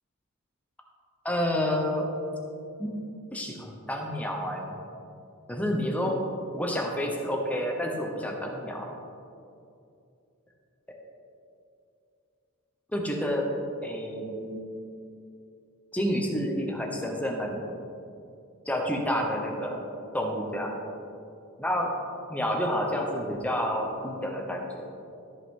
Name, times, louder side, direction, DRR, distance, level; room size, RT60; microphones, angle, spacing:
voice 1, 1.2-2.0 2.8-2.9 3.3-4.8 5.5-6.2 6.5-8.9 12.9-13.4 13.8-14.6 15.9-17.6 18.7-19.8 20.1-20.7 21.6-21.9 22.3-24.9, equal, 5° left, 1 dB, 0.9 m, -29 dB
13.5 x 5.7 x 3.8 m, 2.6 s
head